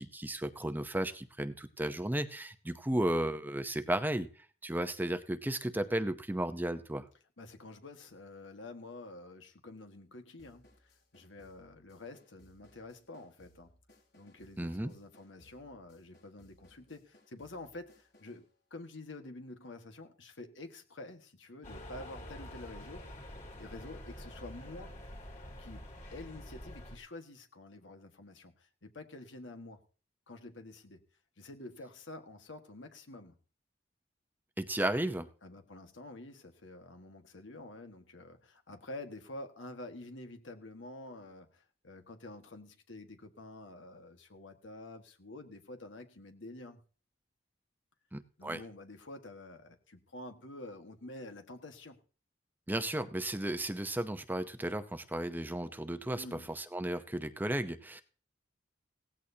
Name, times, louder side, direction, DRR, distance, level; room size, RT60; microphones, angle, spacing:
voice 1, 0.0-4.3 4.6-7.1 14.6-14.9 34.6-35.3 48.1-48.6 52.7-58.0, right 1 dB, 10° right, 10 dB, 0.7 m, -34 dB
voice 2, 7.4-10.7 11.1-13.7 14.1-23.2 23.6-24.9 25.6-29.8 30.3-31.0 31.4-33.4 35.4-46.8 48.4-52.0 56.2-56.5, left 2 dB, 85° left, 6 dB, 1.6 m, -48 dB
sound 1, 10.4-18.5, left 1 dB, 60° left, 6.1 m, -65 dB
sound 2, 21.6-27.0, left 1 dB, 40° left, 3.6 m, -47 dB
17.0 x 15.0 x 2.8 m, 0.40 s
head